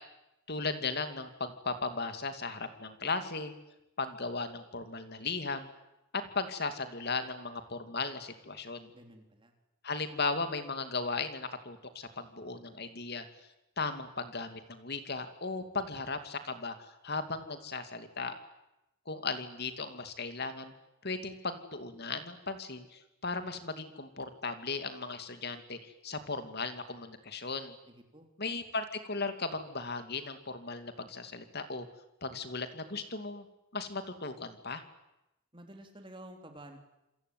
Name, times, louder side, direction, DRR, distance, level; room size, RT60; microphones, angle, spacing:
voice 1, 0.5-3.5 4.0-5.7 6.1-8.9 9.8-13.2 13.8-18.3 19.1-20.7 21.0-27.8 28.4-31.9 32.2-33.5 33.7-34.8, left 4 dB, 50° left, 9 dB, 2.6 m, -36 dB
voice 2, 8.9-9.5 27.9-28.3 35.5-36.8, right 1 dB, 25° right, 5 dB, 3.5 m, -51 dB
27.5 x 23.0 x 9.4 m, 0.93 s
head